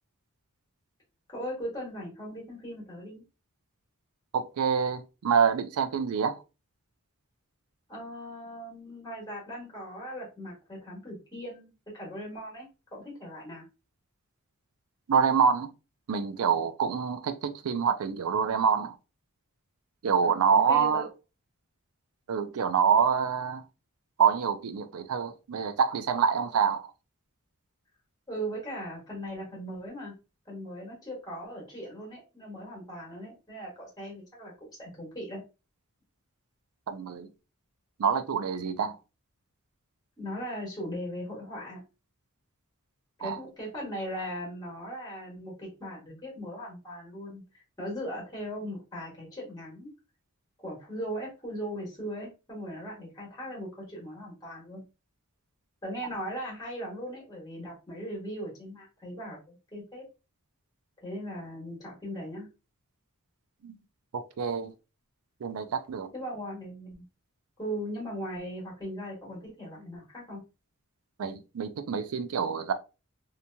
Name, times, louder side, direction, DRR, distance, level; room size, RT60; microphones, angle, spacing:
voice 1, 1.3-3.2 7.9-13.6 20.2-21.1 28.3-30.1 30.4-34.5 34.8-35.4 40.2-41.8 43.2-49.9 50.6-54.8 55.8-60.0 61.0-62.5 66.1-67.0 67.6-70.4, equal, 15° left, 1.3 m, -39 dB
voice 2, 4.3-6.4 15.1-15.7 16.1-19.0 20.0-21.1 22.3-23.6 24.2-26.9 36.9-37.3 38.0-39.0 43.2-43.4 63.6-63.7 64.1-64.7 65.4-66.1 71.2-72.7, right 6 dB, 75° right, 0.4 m, -26 dB
2.9 x 2.7 x 2.2 m
head